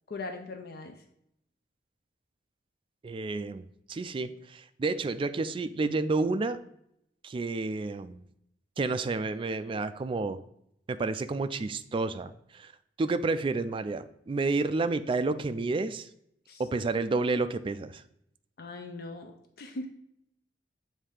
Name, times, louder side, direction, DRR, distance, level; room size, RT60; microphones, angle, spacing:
voice 1, 0.1-1.0 16.5-16.6 18.6-19.9, left 2 dB, 55° left, 5 dB, 0.5 m, -40 dB
voice 2, 3.0-6.6 7.2-8.2 8.8-10.4 10.9-12.7 13.0-16.1 16.6-18.0, right 3 dB, 30° right, 12 dB, 0.3 m, -30 dB
7.5 x 2.7 x 4.8 m, 0.76 s
head